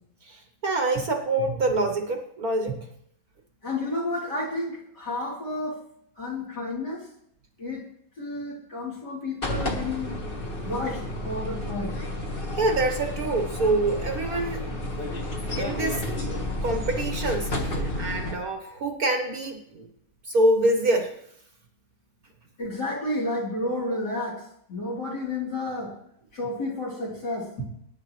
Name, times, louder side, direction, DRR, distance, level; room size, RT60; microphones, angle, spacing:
voice 1, 0.2-2.8 12.6-14.7 15.6-16.0 16.6-19.9 20.2-21.2, right 2 dB, 50° right, 4 dB, 1.5 m, -25 dB
voice 2, 3.6-5.8 6.2-7.1 7.6-7.8 8.2-10.1 10.6-12.0 22.6-25.9 26.3-27.7, left 2 dB, 55° left, -2 dB, 4.1 m, -31 dB
sound 1, 9.4-18.4, left 1 dB, 30° left, 1.6 m, -31 dB
21.0 x 10.0 x 3.2 m, 0.72 s
omnidirectional pair, 2.2 m